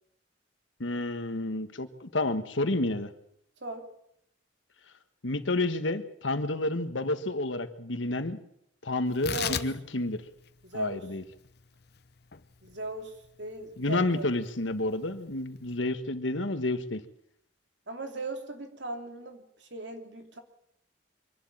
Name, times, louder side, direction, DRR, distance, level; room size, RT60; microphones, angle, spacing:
voice 1, 0.8-3.1 5.2-8.4 8.8-10.2 10.7-11.2 13.8-17.0, left 2 dB, 85° left, 10 dB, 1.5 m, -30 dB
Tearing, 9.1-15.8, left 8 dB, 55° left, 0.9 m, -40 dB
voice 2, 9.2-9.6 10.6-11.1 12.6-14.3 17.9-20.4, right 2 dB, 70° right, 5 dB, 3.0 m, -38 dB
24.5 x 12.0 x 8.8 m, 0.74 s
head